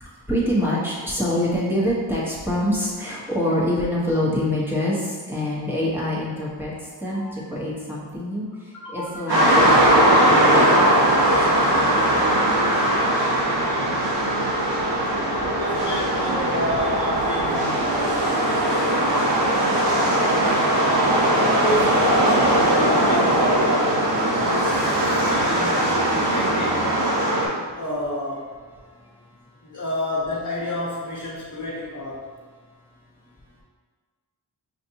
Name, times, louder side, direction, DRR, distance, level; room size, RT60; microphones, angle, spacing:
voice 1, 0.0-6.7 7.0-12.2 16.5-16.6 22.9-23.1 25.5-25.9 27.3-27.6, left 1 dB, 5° right, -7 dB, 1.2 m, -26 dB
voice 2, 8.7-9.2 15.5-21.2 21.6-24.0 24.4-24.9 25.2-26.9 27.8-28.5 29.6-32.3, left 1 dB, 40° left, -7 dB, 1.0 m, -30 dB
sound 1, 9.3-27.5, right 1 dB, 90° right, 1.1 m, -20 dB
5.7 x 2.5 x 2.8 m, 1.5 s
wide cardioid pair, 70°, 40 cm